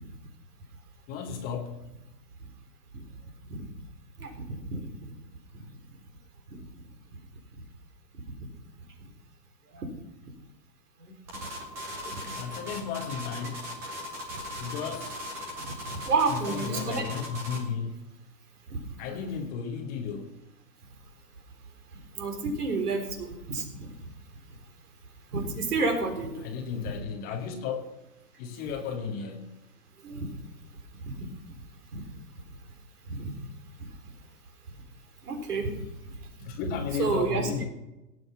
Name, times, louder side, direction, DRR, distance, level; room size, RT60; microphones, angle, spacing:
voice 1, 1.1-1.8 12.2-13.8 14.6-15.2 16.3-17.9 19.0-20.3 26.4-27.8 28.4-29.5 36.4-37.7, left 6 dB, 20° left, 1.0 m, -34 dB
voice 2, 4.2-4.8 9.7-9.9 11.0-11.1 12.1-12.3 14.3-14.4 15.6-17.0 19.1-19.2 22.2-23.9 25.3-26.5 30.0-30.3 31.0-31.1 31.9-32.0 33.1-33.3 35.3-35.7 37.0-37.5, right 4 dB, 65° right, 4.1 m, -30 dB
sound 1, 11.3-17.7, left 1 dB, 5° right, 0.5 m, -38 dB
17.5 x 7.8 x 5.7 m
hypercardioid pair, 145°, 49 cm